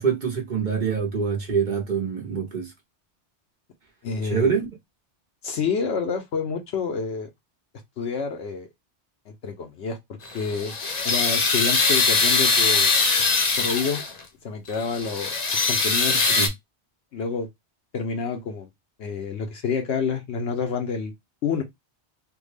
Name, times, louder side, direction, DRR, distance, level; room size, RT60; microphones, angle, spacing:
voice 1, 0.0-2.7 4.2-4.7 16.1-16.5, right 6 dB, 45° right, 0.9 m, -25 dB
voice 2, 4.0-4.5 5.4-7.3 8.0-8.7 9.3-10.0 10.3-10.7 11.0-12.9 13.6-14.0 14.4-15.3 15.7-16.2 17.1-17.5 17.9-18.7 19.0-21.1 21.4-21.6, left 5 dB, 75° left, 0.9 m, -28 dB
sound 1, 10.3-14.2 14.7-16.5, left 4 dB, 45° left, 0.7 m, -22 dB
3.5 x 2.2 x 3.2 m
omnidirectional pair, 1.1 m